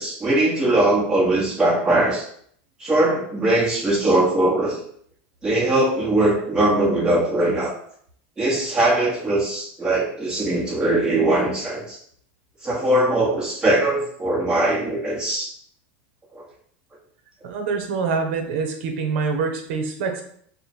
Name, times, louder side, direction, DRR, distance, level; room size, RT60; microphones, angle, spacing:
voice 1, 0.0-2.2 2.8-4.8 5.4-7.7 8.4-12.0 12.6-15.5 16.3-16.4, right 1 dB, 10° right, -4 dB, 1.2 m, -20 dB
voice 2, 17.4-20.2, right 5 dB, 70° right, 4 dB, 0.8 m, -25 dB
3.4 x 2.2 x 4.3 m, 0.63 s
supercardioid pair, 135°, 6 cm